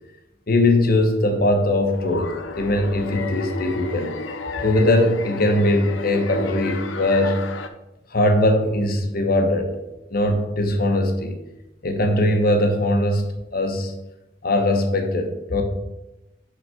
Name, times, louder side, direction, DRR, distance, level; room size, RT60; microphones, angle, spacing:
voice 1, 0.5-4.2 4.6-7.5 8.1-9.7 10.1-11.4 11.8-13.9 14.4-15.6, left 1 dB, 50° left, 5 dB, 0.9 m, -20 dB
sound 1, 1.9-7.7, left 3 dB, 85° left, 0.6 m, -32 dB
6.1 x 4.0 x 5.6 m, 0.96 s
head